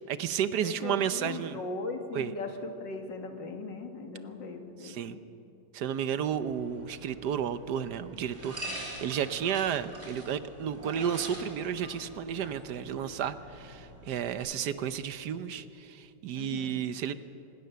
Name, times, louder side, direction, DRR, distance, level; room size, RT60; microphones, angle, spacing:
voice 1, 0.1-1.6 2.2-2.3 4.8-5.2 5.7-17.1, right 8 dB, 70° right, 12 dB, 1.3 m, -32 dB
voice 2, 0.6-5.2 16.3-16.9, left 3 dB, 85° left, 5 dB, 2.4 m, -39 dB
sound 1, 6.4-14.3, right 1 dB, 35° right, 4.5 m, -44 dB
24.0 x 20.0 x 6.9 m, 2.9 s
omnidirectional pair, 1.9 m